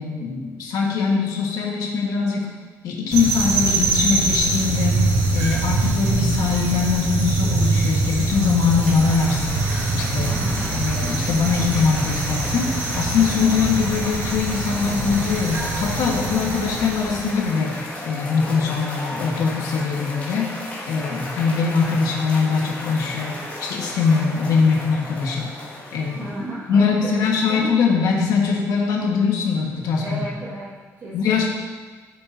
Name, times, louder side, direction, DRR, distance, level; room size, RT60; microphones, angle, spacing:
voice 1, 0.0-2.5 2.8-9.6 9.9-10.3 10.7-17.8 18.0-25.5 25.9-26.2 26.7-30.0 31.1-31.5, left 5 dB, 90° left, -1 dB, 1.6 m, -22 dB
sound 1, 3.1-17.4, right 2 dB, 80° right, 2.6 m, -23 dB
Cheering / Applause, 8.0-26.6, left 1 dB, 25° left, 2.0 m, -34 dB
voice 2, 10.3-10.9 26.2-27.8 29.9-31.6, right 1 dB, 45° right, -9 dB, 1.9 m, -33 dB
14.0 x 7.0 x 2.8 m, 1.4 s
cardioid pair, 155°, 6 cm